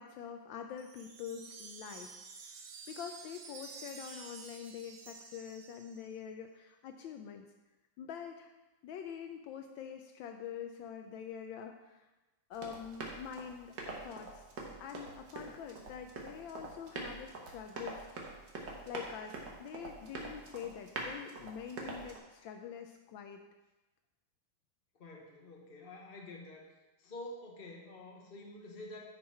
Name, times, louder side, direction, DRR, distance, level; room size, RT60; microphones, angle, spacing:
voice 1, 0.0-2.5 2.9-7.5 8.0-8.5 8.8-12.1 12.5-14.5 14.8-18.1 18.9-23.4, left 8 dB, 75° left, 5 dB, 1.3 m, -45 dB
Wind chime, 0.8-6.2, right 4 dB, 90° right, 1.8 m, -50 dB
Run, 12.5-22.2, right 3 dB, 60° right, 1.8 m, -45 dB
voice 2, 25.0-26.6 27.0-29.0, left 1 dB, 30° left, -1 dB, 1.3 m, -48 dB
10.0 x 5.5 x 4.3 m, 1.1 s
omnidirectional pair, 2.2 m